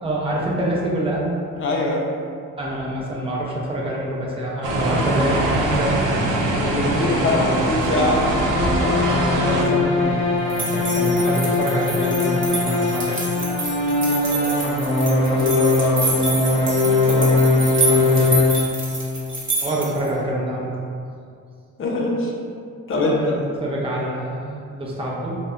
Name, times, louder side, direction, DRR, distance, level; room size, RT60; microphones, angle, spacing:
voice 1, 0.0-1.3 2.6-6.1 8.8-13.2 17.9-18.5 19.6-20.8 22.9-25.4, right 1 dB, 20° right, -4 dB, 0.6 m, -26 dB
voice 2, 1.6-2.1 6.5-8.2 14.0-17.4 21.8-22.3 22.9-23.4, left 2 dB, 45° left, -2 dB, 0.6 m, -24 dB
sound 1, 4.6-9.6, right 1 dB, 85° right, 0.6 m, -22 dB
sound 2, 8.1-19.2, left 3 dB, 80° left, 0.6 m, -21 dB
sound 3, 10.5-20.1, right 3 dB, 40° right, 0.9 m, -28 dB
2.6 x 2.2 x 3.5 m, 2.3 s
cardioid pair, 90°, 30 cm